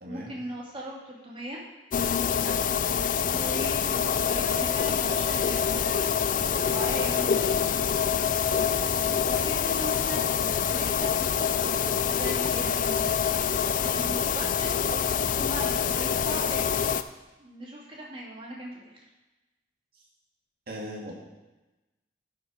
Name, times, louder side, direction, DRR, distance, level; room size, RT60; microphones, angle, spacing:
voice 1, 0.1-1.6 3.2-7.6 9.1-10.4 10.6-11.5 12.0-13.2 13.8-16.7 17.4-18.9, right 1 dB, 30° right, -3 dB, 2.2 m, -39 dB
sound 1, 1.9-17.0, left 7 dB, 45° left, 0.4 m, -26 dB
voice 2, 20.7-21.1, equal, 55° right, -3 dB, 2.2 m, -38 dB
11.5 x 6.8 x 5.0 m, 1.1 s
head